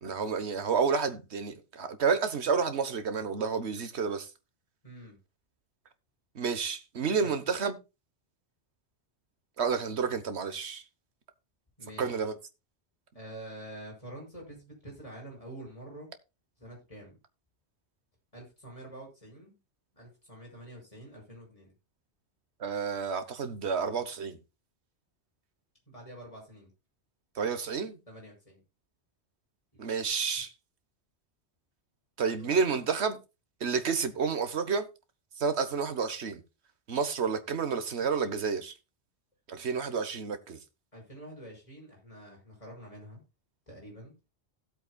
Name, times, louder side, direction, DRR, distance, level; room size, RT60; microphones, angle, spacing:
voice 1, 0.0-4.3 6.3-7.8 9.6-10.8 12.0-12.4 22.6-24.4 27.3-28.0 29.8-30.5 32.2-33.2 33.6-34.9 35.4-36.4 36.9-38.7 39.5-40.6, right 5 dB, 75° right, 1.5 m, -30 dB
voice 2, 4.8-5.2 7.2-7.3 11.8-12.2 13.1-16.1 16.6-17.2 18.3-19.6 19.9-21.7 25.9-26.7 28.1-28.6 32.3-32.6 40.9-43.2 43.7-44.2, right 1 dB, 30° left, 6.3 m, -47 dB
17.0 x 7.9 x 2.3 m
omnidirectional pair, 1.1 m